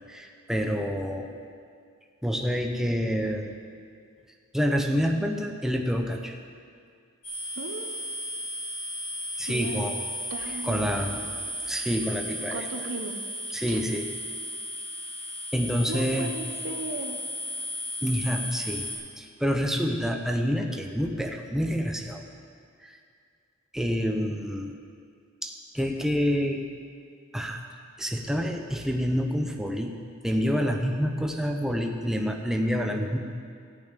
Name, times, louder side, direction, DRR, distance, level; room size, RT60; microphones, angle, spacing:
voice 1, 0.1-1.3 2.2-3.6 4.5-6.3 9.4-9.9 10.6-12.7 13.5-14.0 15.5-16.3 18.0-18.9 19.2-22.2 22.8-23.0 23.7-24.7 25.4-26.6 27.3-27.6 28.0-29.9 30.2-33.2, equal, ahead, 3 dB, 0.8 m, -27 dB
sound 1, 7.2-19.0, left 1 dB, 30° left, 3.6 m, -35 dB
voice 2, 7.6-8.0 9.5-9.8 10.3-11.0 12.5-13.2 13.7-13.8 15.9-17.2, right 2 dB, 75° right, 5 dB, 1.1 m, -36 dB
14.0 x 5.6 x 9.0 m, 2.2 s
head